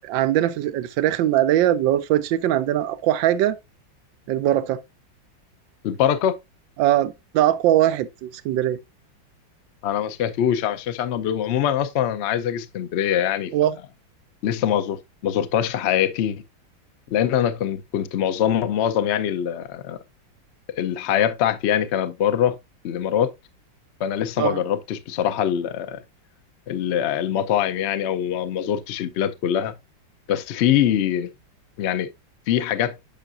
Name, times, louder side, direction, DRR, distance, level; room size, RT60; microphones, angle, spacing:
voice 1, 0.0-3.6 4.3-4.8 6.8-8.8 13.5-13.7 24.4-24.6, right 12 dB, 80° right, 1.3 m, -21 dB
voice 2, 5.8-6.4 9.8-13.5 14.4-15.0 15.2-16.4 17.1-20.0 20.8-22.6 22.8-23.3 24.0-26.0 26.7-29.7 30.3-31.3 31.8-32.1 32.5-33.0, left 10 dB, 90° left, 0.5 m, -23 dB
8.9 x 5.5 x 2.4 m
omnidirectional pair, 2.0 m